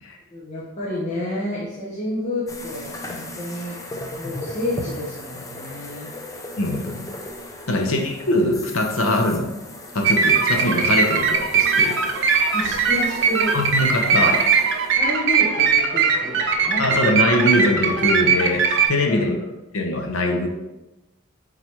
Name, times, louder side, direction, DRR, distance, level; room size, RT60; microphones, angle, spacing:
voice 1, 0.3-3.8 4.2-6.1 12.5-13.6 14.1-14.4 15.0-17.1 19.1-19.4, left 1 dB, 35° left, -7 dB, 0.8 m, -30 dB
sound 1, 2.5-15.0, left 1 dB, 15° left, 0.4 m, -37 dB
voice 2, 6.6-7.1 7.7-9.6 9.9-12.0 13.5-14.4 16.8-19.4 19.7-20.5, left 1 dB, 70° left, 3 dB, 0.7 m, -22 dB
sound 2, 10.0-18.9, right 5 dB, 55° right, 0.5 m, -20 dB
4.5 x 3.8 x 3.0 m, 1.0 s
head